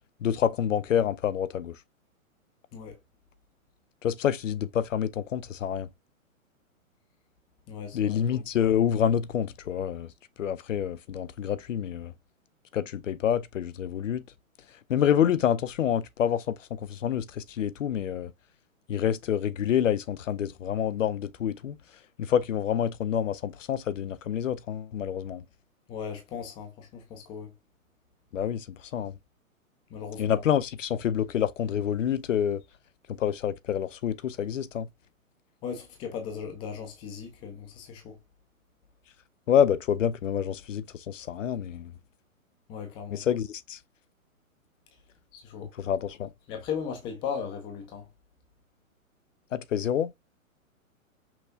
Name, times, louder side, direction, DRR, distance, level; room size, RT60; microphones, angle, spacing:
voice 1, 0.2-1.8 4.0-5.9 7.9-10.1 10.4-12.1 12.7-14.2 14.9-18.3 18.9-21.8 22.2-25.4 28.3-29.1 30.2-32.6 33.1-34.9 39.5-41.9 43.1-43.8 45.8-46.3 49.5-50.1, left 9 dB, 65° left, 0.5 m, -27 dB
voice 2, 7.7-8.2 25.9-27.5 29.9-30.4 35.6-38.2 42.7-43.2 45.3-45.7 46.5-48.1, left 7 dB, 10° left, 0.6 m, -37 dB
5.7 x 2.6 x 2.6 m
figure-of-eight pair, 120°, 42 cm